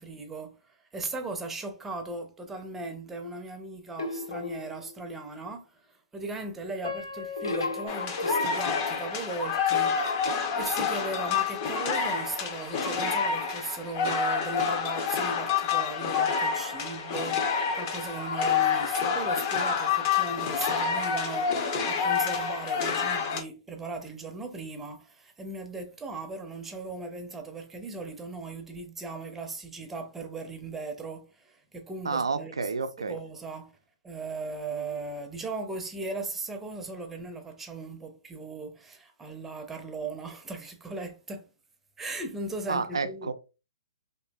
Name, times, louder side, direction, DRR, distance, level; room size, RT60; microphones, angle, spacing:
voice 1, 0.0-32.7 33.0-33.7 34.0-41.5 42.0-43.3, right 3 dB, 10° right, 0.4 m, -38 dB
sound 1, 4.0-5.0 7.4-8.5, left 2 dB, 85° left, 0.5 m, -33 dB
Piano, 6.8-9.8 10.4-10.5 11.2-11.4, left 6 dB, 70° left, 1.4 m, -42 dB
sound 2, 7.9-23.4, left 6 dB, 40° left, 0.5 m, -28 dB
voice 2, 32.1-33.2 42.7-43.3, right 4 dB, 90° right, 0.3 m, -30 dB
2.6 x 2.5 x 2.2 m
hypercardioid pair, 135°, 3 cm